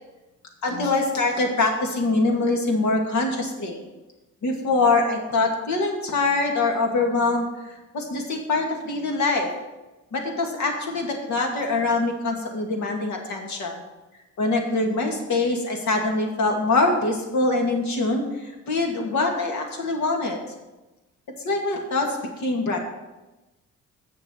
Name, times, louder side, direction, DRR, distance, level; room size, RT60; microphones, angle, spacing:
voice 1, 0.6-3.8 4.4-9.5 10.1-13.8 14.4-20.4 21.4-22.8, left 3 dB, 70° left, 1 dB, 2.4 m, -24 dB
7.9 x 6.8 x 6.5 m, 1.1 s
cardioid pair, 90°, 30 cm